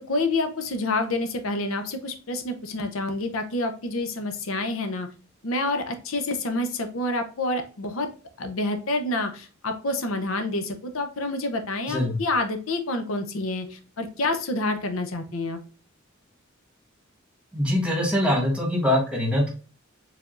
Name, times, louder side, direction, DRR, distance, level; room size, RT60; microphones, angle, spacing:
voice 1, 0.1-5.1 5.4-8.1 8.4-15.6, left 2 dB, 85° left, 7 dB, 0.7 m, -28 dB
voice 2, 17.5-19.5, left 1 dB, 5° right, 0 dB, 1.3 m, -23 dB
4.7 x 3.4 x 2.4 m, 0.36 s
head